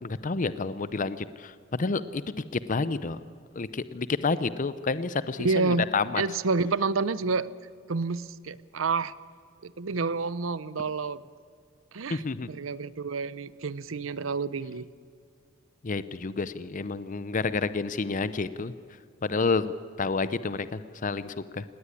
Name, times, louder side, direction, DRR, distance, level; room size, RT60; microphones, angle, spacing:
voice 1, 0.0-2.2 2.5-3.2 3.6-6.2 12.1-12.5 15.8-18.7 19.2-19.7 20.0-21.6, left 4 dB, 40° left, 14 dB, 0.6 m, -29 dB
voice 2, 5.4-5.9 6.1-7.5 7.9-9.1 9.6-11.2 11.9-14.9, right 4 dB, 90° right, 18 dB, 0.7 m, -29 dB
18.5 x 18.0 x 9.7 m, 2.2 s
head